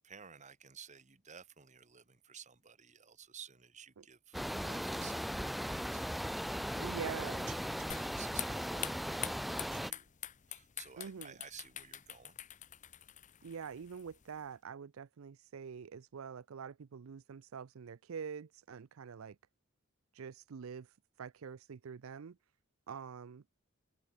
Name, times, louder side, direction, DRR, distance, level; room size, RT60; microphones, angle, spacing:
voice 1, 0.0-10.1 10.5-12.4, right 7 dB, 35° right, 1.6 m, -54 dB
sound 1, 4.3-9.9, equal, ahead, 0.4 m, -38 dB
voice 2, 6.8-7.5 11.0-11.3 13.4-19.4 20.1-22.4 22.9-23.4, right 6 dB, 75° right, 0.5 m, -45 dB
sound 2, 7.9-14.5, left 11 dB, 35° left, 0.7 m, -46 dB
open air
head